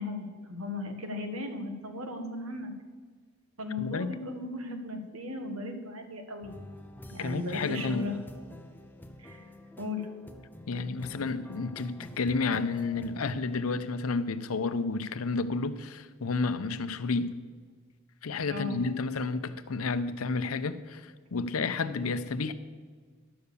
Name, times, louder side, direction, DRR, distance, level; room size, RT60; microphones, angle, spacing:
voice 1, 0.0-2.7 3.6-6.5 7.1-8.2 9.2-9.5 9.8-10.0 18.5-18.8, left 2 dB, 80° right, 5 dB, 1.5 m, -36 dB
voice 2, 3.8-4.2 7.2-8.1 10.7-17.3 18.2-22.5, left 4 dB, 80° left, 12 dB, 0.6 m, -31 dB
sound 1, 6.4-13.4, left 1 dB, 10° left, 0.7 m, -48 dB
11.5 x 6.9 x 6.8 m, 1.5 s
head